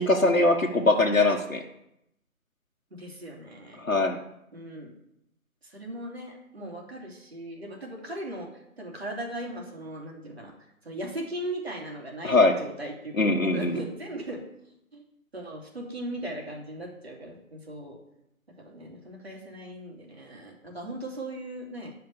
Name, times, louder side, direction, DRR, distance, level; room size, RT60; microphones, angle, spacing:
voice 1, 0.0-1.6 3.8-4.2 12.2-12.5 13.2-13.8, left 2 dB, 70° left, 1 dB, 1.5 m, -22 dB
voice 2, 2.9-3.9 4.5-4.9 5.6-10.5 10.8-13.2 13.4-14.4 14.9-15.0 15.3-18.0 18.6-21.9, right 1 dB, 45° right, 0 dB, 3.2 m, -38 dB
11.0 x 5.8 x 7.0 m, 0.80 s
figure-of-eight pair, 160°, 42 cm